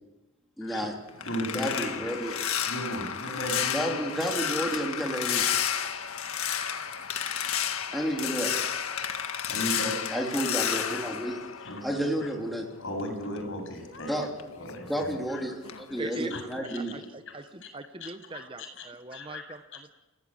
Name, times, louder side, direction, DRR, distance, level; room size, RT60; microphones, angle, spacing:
voice 1, 0.6-0.9 1.5-2.4 3.7-5.4 7.9-8.6 10.1-11.4 11.8-12.7 14.1-14.3 14.9-17.0, equal, ahead, -1 dB, 3.3 m, -31 dB
sound 1, 0.7-12.3 12.6-15.3 15.6-16.0 16.3-16.6, left 8 dB, 80° left, 1.7 m, -32 dB
voice 2, 1.2-2.3 2.7-4.0 7.9-8.1 9.5-10.1 10.4-11.0 11.6-11.8 12.2-12.3 12.8-14.1 14.5-15.4 16.3-16.8 18.0-18.1 18.3-19.4, equal, 60° left, 3 dB, 7.6 m, -36 dB
voice 3, 16.0-16.3 16.6-19.9, right 2 dB, 25° right, 9 dB, 0.9 m, -41 dB
30.0 x 17.5 x 8.6 m, 1.1 s
head